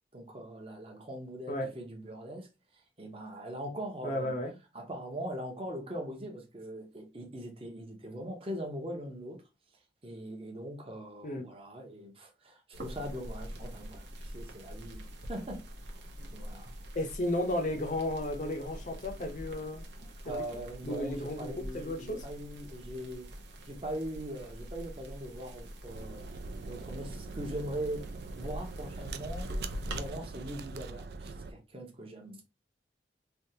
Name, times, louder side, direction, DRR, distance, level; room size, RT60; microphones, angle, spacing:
voice 1, 0.1-4.4 4.7-9.4 10.0-16.7 20.2-23.3 23.6-26.2 26.6-28.1 28.4-29.5 29.9-32.5, right 1 dB, 30° right, 0.8 m, -41 dB
voice 2, 4.0-4.5 11.2-11.5 16.9-19.9 20.2-20.4 20.8-22.2, left 1 dB, 45° left, 0.7 m, -34 dB
sound 1, 12.7-30.1, equal, 75° right, 0.8 m, -44 dB
sound 2, 25.9-31.5, right 3 dB, 60° right, 0.3 m, -42 dB
3.5 x 2.4 x 2.8 m
head